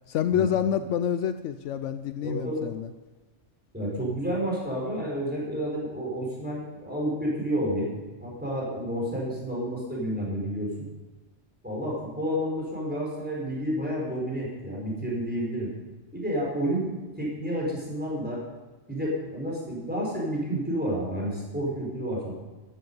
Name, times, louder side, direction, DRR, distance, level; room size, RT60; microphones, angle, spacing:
voice 1, 0.1-2.9, left 9 dB, 75° left, 11 dB, 0.9 m, -27 dB
voice 2, 2.2-2.7 3.7-7.9 8.2-10.9 11.6-15.7 16.1-16.9 17.2-18.4 18.9-22.3, equal, 5° right, -4 dB, 4.4 m, -30 dB
14.0 x 10.5 x 5.4 m, 1.2 s
omnidirectional pair, 1.3 m